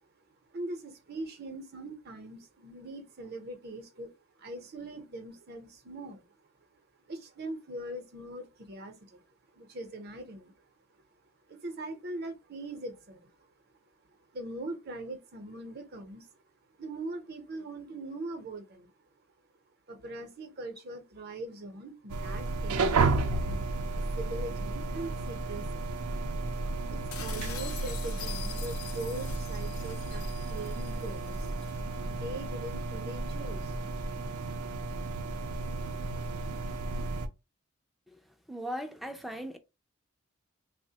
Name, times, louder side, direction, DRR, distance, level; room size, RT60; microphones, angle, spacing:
voice 1, 0.5-4.1 4.4-6.3 7.1-9.2 9.5-10.6 10.9-11.0 11.5-13.3 14.3-16.3 16.8-18.9 19.9-25.8 26.9-31.5 32.0-33.8, right 2 dB, 45° right, 0.6 m, -41 dB
sound 1, 22.1-37.3, right 3 dB, 90° right, 0.5 m, -33 dB
sound 2, 27.1-31.8, left 9 dB, 80° left, 0.6 m, -45 dB
voice 2, 38.5-39.6, equal, ahead, 0.3 m, -38 dB
3.3 x 2.1 x 2.7 m
head